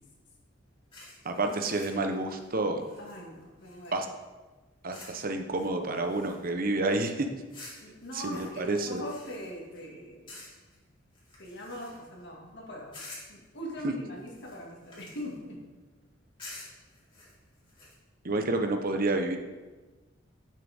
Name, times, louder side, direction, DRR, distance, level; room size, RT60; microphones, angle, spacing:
sound 1, 0.9-4.1 4.9-5.2 5.5-6.7 7.5-9.8 10.3-10.8 11.1-12.2 12.9-13.4 14.2-15.4 16.4-17.9, left 2 dB, 25° left, 3.0 m, -50 dB
voice 1, 1.2-2.8 3.9-4.1 4.8-7.3 8.1-9.0 13.8-13.9 18.2-19.4, right 2 dB, 50° right, 5 dB, 0.9 m, -29 dB
voice 2, 3.0-4.0 7.8-10.3 11.4-12.9 13.3-15.6, left 1 dB, 65° left, -1 dB, 2.2 m, -41 dB
11.5 x 7.4 x 3.6 m, 1.2 s
head